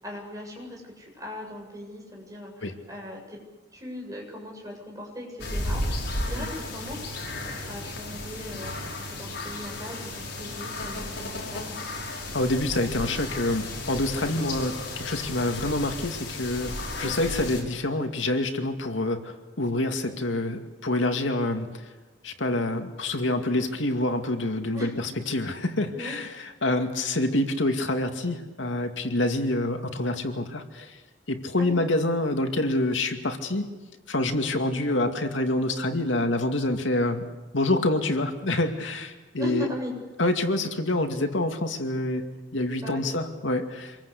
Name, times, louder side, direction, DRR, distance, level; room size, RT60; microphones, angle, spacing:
voice 1, 0.0-3.4 3.7-7.0 7.3-11.8 17.0-17.1 24.7-24.9 25.9-26.1 31.6-31.8 34.7-34.8 39.4-39.9 42.8-43.0, left 1 dB, 20° right, -1 dB, 7.7 m, -39 dB
sound 1, 5.4-17.6, left 2 dB, 65° left, 5.8 m, -34 dB
voice 2, 12.3-21.9 22.2-31.0 31.3-33.7 34.1-37.2 37.5-39.7 40.2-42.2 42.5-44.0, left 1 dB, 85° left, 5 dB, 2.4 m, -27 dB
27.0 x 22.5 x 8.4 m, 1.2 s
head